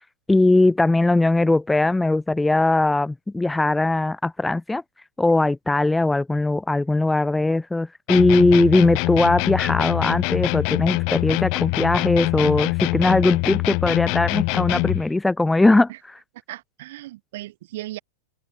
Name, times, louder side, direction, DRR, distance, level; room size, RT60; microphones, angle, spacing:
voice 1, 0.3-4.8 5.2-15.9, left 2 dB, 5° left, 0.5 m, -20 dB
sound 1, 8.1-15.1, left 33 dB, 50° left, 1.2 m, -24 dB
voice 2, 16.5-18.0, right 16 dB, 65° right, 3.2 m, -36 dB
open air
supercardioid pair, 140°, 0 cm